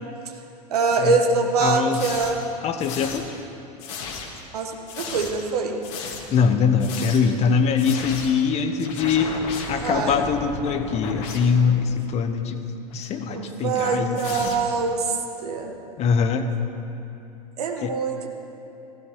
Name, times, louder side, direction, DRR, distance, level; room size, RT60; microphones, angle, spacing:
voice 1, 0.7-2.4 4.5-5.8 9.7-10.2 13.3-15.2 15.4-15.7 17.6-18.3, right 4 dB, 65° right, 3 dB, 1.5 m, -24 dB
voice 2, 1.6-2.1 2.6-3.3 6.3-9.4 9.7-12.6 12.9-14.6 16.0-16.5 17.8-17.9, left 6 dB, 30° left, 8 dB, 1.1 m, -22 dB
sound 1, 1.9-2.5 2.8-3.4 3.8-4.5 4.9-5.5 5.8-6.4 6.8-7.4 7.8-8.5 8.8-11.9 12.9-13.1 14.1-14.9, left 4 dB, 50° left, 1.9 m, -35 dB
15.5 x 15.5 x 4.6 m, 2.9 s
figure-of-eight pair, 90°, 21 cm